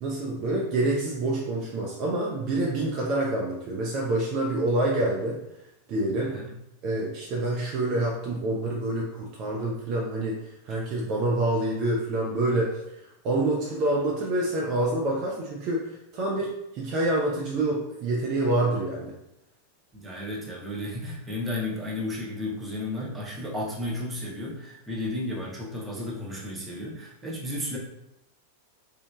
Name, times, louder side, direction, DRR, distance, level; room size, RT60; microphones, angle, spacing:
voice 1, 0.0-5.4 5.9-6.3 6.8-10.4 10.6-12.8 13.2-19.1, right 2 dB, 40° right, -2 dB, 0.4 m, -27 dB
voice 2, 6.2-6.5 19.9-27.8, left 1 dB, 10° right, -4 dB, 0.7 m, -33 dB
3.0 x 2.1 x 2.3 m, 0.85 s
figure-of-eight pair, 90°, 0 cm